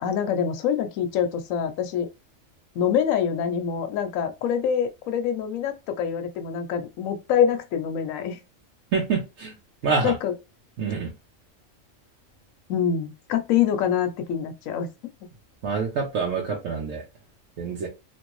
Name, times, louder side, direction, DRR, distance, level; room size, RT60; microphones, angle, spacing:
voice 1, 0.0-2.1 2.8-8.4 10.0-10.3 12.7-14.9, left 8 dB, 80° left, 1.0 m, -25 dB
voice 2, 8.9-9.5 9.8-10.2 10.8-11.1 15.6-17.0 17.6-17.9, right 5 dB, 75° right, 1.1 m, -26 dB
2.9 x 2.6 x 3.0 m
omnidirectional pair, 1.4 m